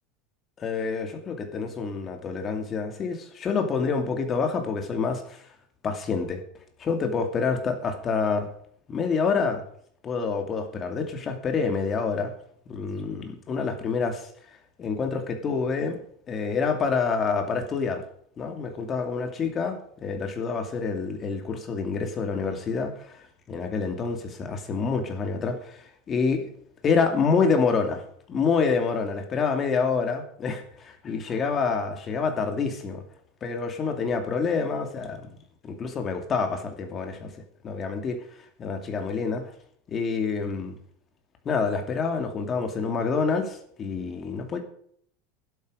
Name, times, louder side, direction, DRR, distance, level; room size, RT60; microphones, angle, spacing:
voice 1, 0.6-5.5 5.8-6.4 6.8-8.5 8.9-9.6 10.0-12.3 12.7-14.3 14.8-16.0 16.3-18.0 18.4-26.5 26.8-28.0 28.3-33.0 33.4-35.3 35.6-37.3 37.6-38.2 38.6-39.5 39.9-40.8 41.4-44.6, left 5 dB, 20° left, 6 dB, 2.5 m, -27 dB
12.5 x 11.5 x 5.1 m, 0.62 s
supercardioid pair, 165°, 0 cm